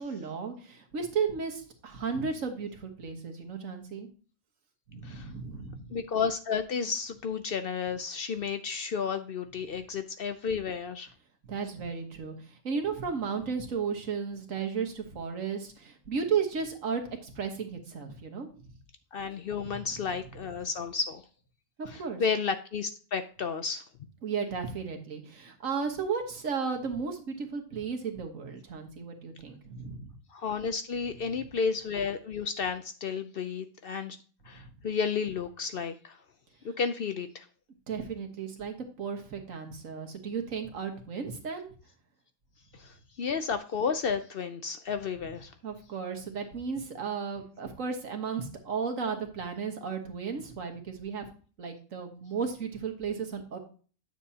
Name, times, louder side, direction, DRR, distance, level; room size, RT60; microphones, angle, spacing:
voice 1, 0.0-4.1 4.9-5.8 11.5-12.3 12.6-18.5 19.7-19.8 21.8-22.2 24.2-30.1 34.5-34.7 37.9-41.7 45.6-51.2 51.6-53.6, right 6 dB, 85° right, 4 dB, 1.7 m, -34 dB
voice 2, 5.9-11.1 19.1-21.2 21.9-23.8 30.3-34.2 34.5-36.2 36.6-37.5 42.7-45.5, left 6 dB, 60° left, 9 dB, 0.7 m, -32 dB
9.2 x 6.9 x 2.8 m, 0.39 s
omnidirectional pair, 1.3 m